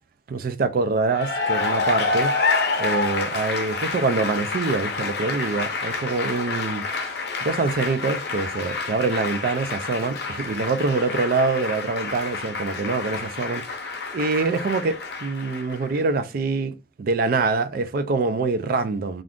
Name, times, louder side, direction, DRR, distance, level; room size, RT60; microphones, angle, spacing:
voice 1, 0.3-2.3 2.8-13.8 14.1-19.2, right 4 dB, 55° right, 0.4 m, -25 dB
Cheering / Applause, 1.1-16.0, left 4 dB, 65° left, 0.6 m, -28 dB
2.5 x 2.4 x 3.4 m
head